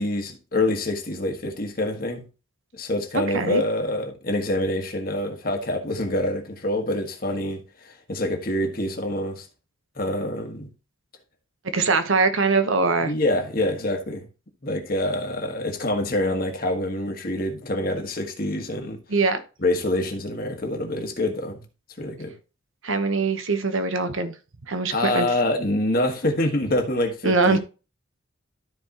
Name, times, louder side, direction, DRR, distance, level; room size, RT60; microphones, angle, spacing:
voice 1, 0.0-2.3 2.7-9.5 10.0-10.7 13.0-14.3 14.6-19.0 19.6-21.6 22.0-22.3 24.9-27.6, left 1 dB, 45° left, 1.4 m, -26 dB
voice 2, 3.1-3.6 11.7-13.1 19.1-19.4 22.8-24.3 24.7-25.3 27.2-27.6, right 4 dB, 70° right, 1.0 m, -22 dB
13.0 x 4.6 x 2.9 m
head